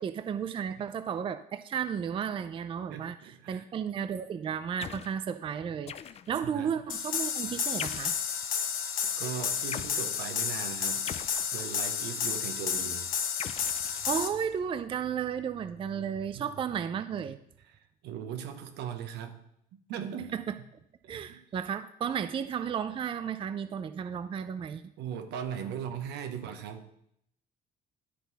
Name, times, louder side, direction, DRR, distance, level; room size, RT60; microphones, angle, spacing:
voice 1, 0.0-6.0 6.3-8.2 13.9-17.4 20.3-20.5 21.1-24.9, right 8 dB, 30° right, 11 dB, 0.4 m, -33 dB
voice 2, 2.9-3.6 6.4-6.7 9.2-11.1 11.5-13.1 16.3-16.5 17.7-19.4 19.9-20.3 21.0-21.4 25.0-26.9, right 8 dB, 85° right, 7 dB, 1.0 m, -39 dB
sound 1, 4.8-5.2 5.9-6.5 7.8-8.3 9.7-10.0 11.1-11.9 13.4-14.5, left 9 dB, 40° left, 0.4 m, -41 dB
sound 2, 6.9-14.3, left 7 dB, 55° left, 0.9 m, -31 dB
11.5 x 4.1 x 4.0 m, 0.74 s
cardioid pair, 110°, 17 cm